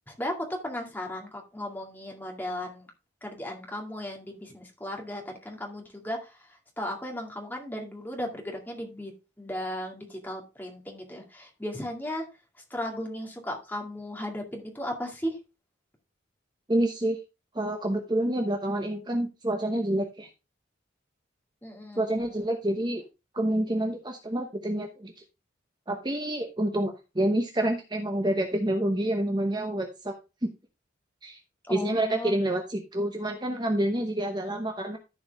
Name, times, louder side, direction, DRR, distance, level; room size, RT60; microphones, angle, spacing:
voice 1, 0.1-2.9 3.2-6.4 6.8-9.1 9.4-12.2 12.7-15.4 21.6-22.1 31.7-32.3, left 1 dB, 10° left, 1 dB, 2.2 m, -36 dB
voice 2, 16.7-17.2 17.5-20.3 22.0-23.0 23.3-25.1 25.9-30.1 31.2-31.4 31.7-35.0, right 1 dB, 20° right, 3 dB, 0.9 m, -28 dB
14.0 x 4.8 x 3.4 m, 0.28 s
head